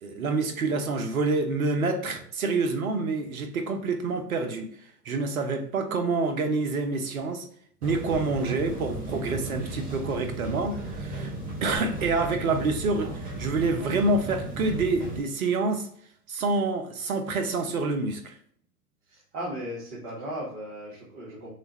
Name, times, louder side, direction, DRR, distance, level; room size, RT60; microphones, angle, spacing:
voice 1, 0.0-4.7 5.0-7.4 7.8-11.3 11.6-15.9 16.3-18.4, right 3 dB, 60° right, 1.0 m, -27 dB
sound 1, 7.8-15.2, right 2 dB, 20° right, 2.0 m, -35 dB
voice 2, 19.1-21.5, equal, 45° right, 1.7 m, -36 dB
6.4 x 2.5 x 3.1 m
figure-of-eight pair, 100°, 47 cm